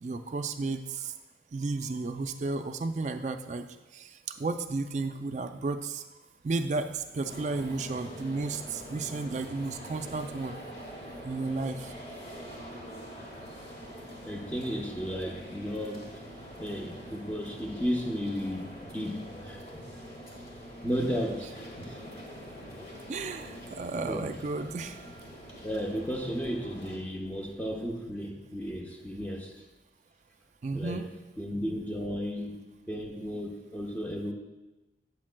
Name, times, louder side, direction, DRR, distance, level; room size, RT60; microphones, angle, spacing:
voice 1, 0.0-1.1 1.5-3.7 3.9-6.0 6.4-10.6 11.2-11.9 23.1-25.0 30.6-31.1, right 3 dB, 40° right, 8 dB, 0.3 m, -33 dB
sound 1, 7.3-27.0, equal, 35° left, 1.3 m, -45 dB
voice 2, 14.2-16.3 16.6-19.8 20.8-22.0 24.0-24.3 25.6-29.6 30.7-31.0 31.4-34.3, equal, 10° left, 0 dB, 0.7 m, -34 dB
8.3 x 7.3 x 2.2 m, 1.1 s
head